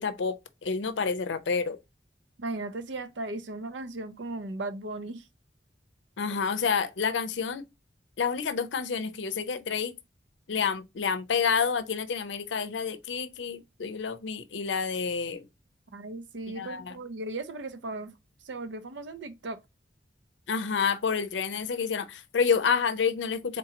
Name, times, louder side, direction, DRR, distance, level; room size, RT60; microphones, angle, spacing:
voice 1, 0.0-1.8 6.2-7.6 8.2-9.9 10.5-15.5 16.5-17.0 20.5-23.6, left 6 dB, 85° left, 0.5 m, -29 dB
voice 2, 2.4-5.3 15.9-18.1 18.4-19.6, right 2 dB, 90° right, 0.6 m, -36 dB
3.7 x 2.9 x 3.7 m
head